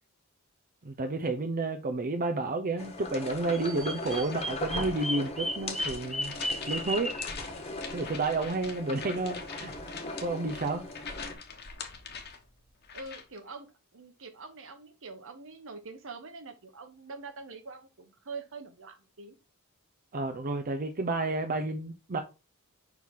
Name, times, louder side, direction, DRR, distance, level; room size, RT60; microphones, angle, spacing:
voice 1, 0.8-6.4 6.7-7.1 7.9-9.7 10.2-10.9 20.1-22.2, right 3 dB, 40° right, 0.6 m, -31 dB
sound 1, 2.8-11.3, left 2 dB, 30° left, 1.3 m, -39 dB
Bird vocalization bird call bird song, 3.5-7.3, equal, ahead, 0.6 m, -35 dB
sound 2, 3.9-13.4, left 5 dB, 50° left, 1.1 m, -44 dB
voice 2, 12.9-19.4, right 4 dB, 65° right, 1.1 m, -45 dB
5.7 x 4.6 x 3.7 m
head